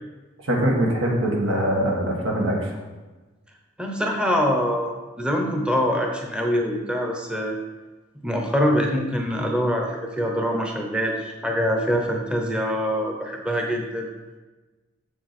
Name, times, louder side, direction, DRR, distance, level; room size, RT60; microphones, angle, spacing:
voice 1, 0.4-2.6, right 1 dB, 80° right, -1 dB, 1.8 m, -22 dB
voice 2, 3.8-7.5 8.2-14.1, equal, 5° right, 1 dB, 0.8 m, -24 dB
7.5 x 6.7 x 4.2 m, 1.2 s
head